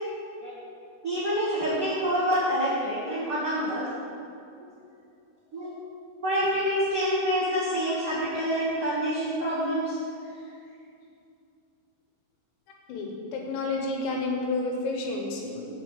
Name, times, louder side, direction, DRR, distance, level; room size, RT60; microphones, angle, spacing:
voice 1, 1.0-3.8 5.5-5.7 6.2-10.0, equal, 75° right, -8 dB, 1.2 m, -27 dB
voice 2, 12.9-15.7, left 2 dB, 80° left, 1 dB, 3.2 m, -30 dB
7.6 x 5.8 x 7.2 m, 2.4 s
omnidirectional pair, 5.0 m